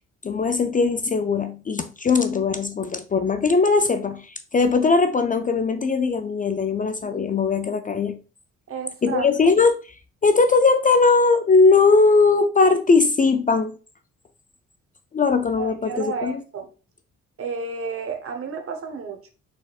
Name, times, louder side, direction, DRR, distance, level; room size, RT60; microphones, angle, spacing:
voice 1, 0.2-8.2 9.0-9.8 10.2-13.8 15.1-16.4, left 4 dB, 30° left, 0.4 m, -19 dB
voice 2, 8.7-9.3 15.6-16.7 17.4-19.3, right 5 dB, 50° right, 0.9 m, -31 dB
4.2 x 4.0 x 2.4 m
cardioid pair, 90°, 30 cm